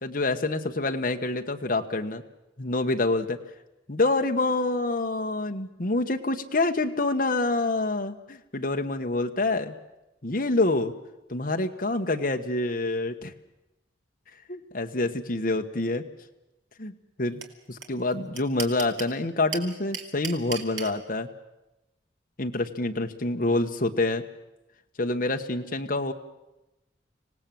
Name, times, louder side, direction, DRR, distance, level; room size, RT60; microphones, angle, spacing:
voice 1, 0.0-2.2 2.6-3.4 3.9-9.7 10.2-10.9 11.3-13.3 14.5-16.0 16.8-16.9 17.2-17.4 17.7-21.3 22.4-24.2 25.0-26.1, left 2 dB, 50° left, 4 dB, 1.3 m, -27 dB
sound 1, 17.4-17.5 17.8-17.9 18.1-19.1 19.5-20.9, right 7 dB, 80° right, 2.5 m, -33 dB
25.5 x 18.0 x 7.7 m, 0.96 s
head